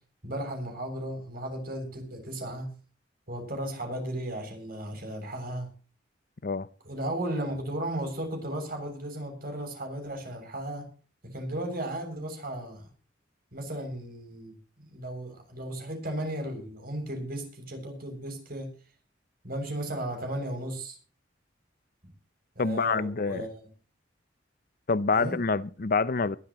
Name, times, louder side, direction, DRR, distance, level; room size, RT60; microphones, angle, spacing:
voice 1, 0.2-2.7 3.3-5.7 6.8-10.9 11.2-12.8 13.5-18.7 19.4-21.0 22.6-23.6 25.1-25.4, right 1 dB, 50° right, 7.0 m, -35 dB
voice 2, 22.6-23.5 24.9-26.4, left 4 dB, 50° left, 0.7 m, -26 dB
21.5 x 12.5 x 3.1 m
head